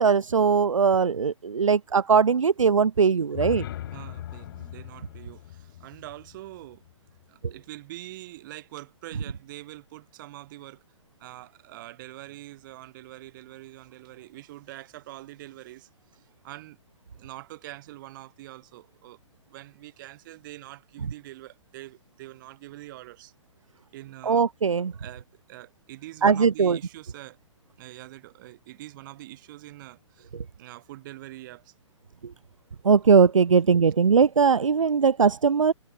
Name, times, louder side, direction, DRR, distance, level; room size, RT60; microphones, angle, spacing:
voice 1, 0.0-3.6 24.3-24.9 26.2-26.8 32.8-35.7, right 6 dB, 80° right, 0.5 m, -20 dB
sound 1, 3.2-7.2, left 12 dB, 45° left, 2.0 m, -39 dB
voice 2, 3.9-6.8 7.3-10.8 11.2-16.8 17.1-19.2 19.5-23.3 23.9-24.5 24.9-27.4 27.8-31.7, right 16 dB, 40° right, 6.0 m, -44 dB
figure-of-eight pair, 125°, 16 cm